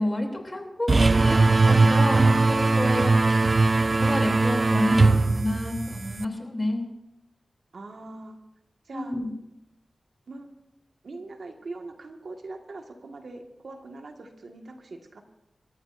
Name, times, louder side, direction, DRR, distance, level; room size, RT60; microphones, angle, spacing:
voice 1, 0.0-3.1 4.0-6.9 8.9-9.3, left 1 dB, 25° left, 1 dB, 3.0 m, -30 dB
sound 1, 0.9-6.2, right 3 dB, 45° right, 0.4 m, -20 dB
voice 2, 7.7-8.4 8.8-9.1 10.3-10.5 11.0-15.2, right 2 dB, 75° right, 3 dB, 1.7 m, -41 dB
26.5 x 13.5 x 2.6 m, 0.90 s
wide cardioid pair, 90°, 0 cm